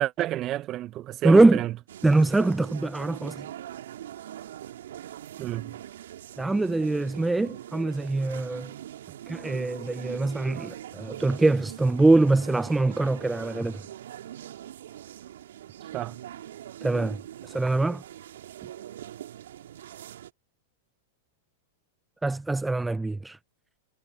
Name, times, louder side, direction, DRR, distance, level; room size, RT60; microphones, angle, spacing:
voice 1, 0.0-1.7 5.4-5.8 9.1-9.2 10.5-10.6 15.9-16.2 18.6-18.7, right 14 dB, 35° right, 0.9 m, -30 dB
voice 2, 1.2-1.6 2.0-3.4 6.4-8.7 9.3-13.8 16.8-17.2 17.4-18.0 22.2-23.4, right 2 dB, 10° right, 0.5 m, -23 dB
sound 1, 1.9-20.3, right 11 dB, 70° right, 3.3 m, -42 dB
hypercardioid pair, 110°, 0 cm